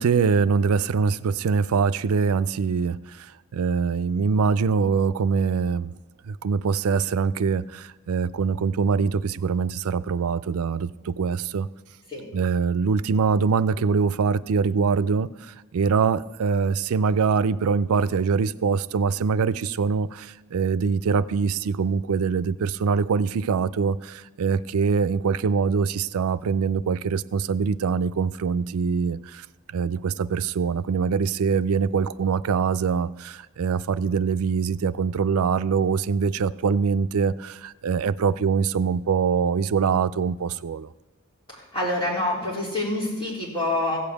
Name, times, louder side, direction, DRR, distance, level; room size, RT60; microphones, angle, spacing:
voice 1, 0.0-5.9 6.2-11.7 12.3-29.5 29.7-40.9, right 5 dB, 80° right, 15 dB, 0.4 m, -23 dB
voice 2, 41.5-44.0, left 1 dB, 25° left, -5 dB, 3.9 m, -27 dB
15.5 x 5.3 x 8.3 m, 1.1 s
head